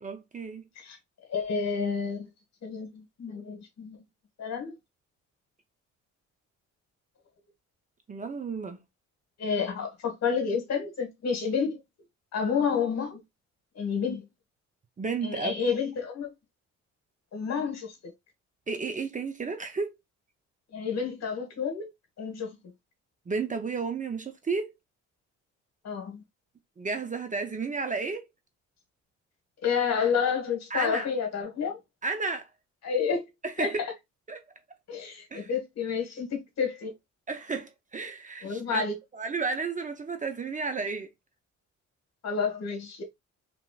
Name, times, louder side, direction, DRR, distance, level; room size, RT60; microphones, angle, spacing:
voice 1, 0.0-0.6 8.1-8.8 15.0-15.8 18.7-19.9 23.3-24.7 26.8-28.2 30.7-31.1 32.0-32.5 33.4-33.8 34.3-34.4 35.3-35.5 37.3-38.8 39.2-41.1, right 4 dB, 25° right, 0.5 m, -32 dB
voice 2, 1.3-2.3 2.6-4.0 4.4-4.8 9.4-11.8 12.3-13.2 13.7-14.2 15.2-16.3 17.3-17.9 20.7-21.9 22.2-22.6 25.8-26.2 29.6-31.8 32.8-33.2 33.6-33.9 34.9-36.9 38.4-38.9 42.2-43.0, left 6 dB, 60° left, 1.3 m, -29 dB
2.9 x 2.9 x 2.3 m
cardioid pair, 90°, 30 cm